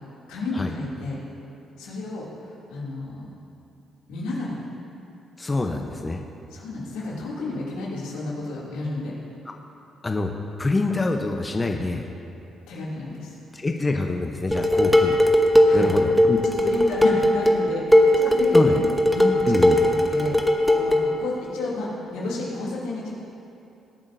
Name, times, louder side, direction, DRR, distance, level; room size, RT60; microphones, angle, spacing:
voice 1, 0.3-1.2 1.8-2.3 2.7-3.3 4.1-4.6 6.5-9.1 12.7-13.4 14.7-14.9 15.6-15.9 16.4-18.8 19.1-23.1, left 2 dB, 90° left, -6 dB, 2.7 m, -31 dB
voice 2, 5.4-6.2 9.5-9.6 10.0-10.3 10.6-12.0 13.5-15.2 15.7-16.4 18.5-18.8 19.4-19.8, left 2 dB, 25° left, 3 dB, 0.8 m, -25 dB
Dishes pots and pans, 14.5-21.1, left 1 dB, ahead, 1.1 m, -18 dB
21.0 x 8.5 x 2.7 m, 2.7 s
supercardioid pair, 60°, 0 cm